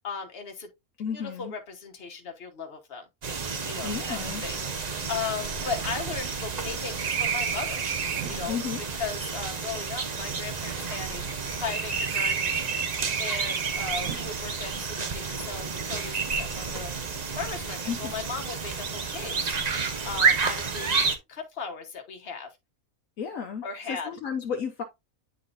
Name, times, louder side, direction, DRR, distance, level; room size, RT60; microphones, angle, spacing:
voice 1, 0.0-0.7 1.1-3.0 3.6-4.6 5.1-7.8 8.3-8.6 8.9-11.2 11.6-12.5 13.2-16.9 17.4-19.6 20.0-21.0 21.3-22.5 23.6-24.1, left 5 dB, 45° left, 1.4 m, -36 dB
voice 2, 1.0-1.5 3.8-4.4 8.5-8.8 17.9-18.1 23.2-24.8, left 7 dB, 70° left, 1.2 m, -33 dB
sound 1, 3.2-21.2, right 5 dB, 40° right, 0.7 m, -30 dB
sound 2, 5.2-8.5 9.3-11.7 12.0-14.4, right 8 dB, 75° right, 1.3 m, -34 dB
9.8 x 3.8 x 2.5 m
omnidirectional pair, 1.5 m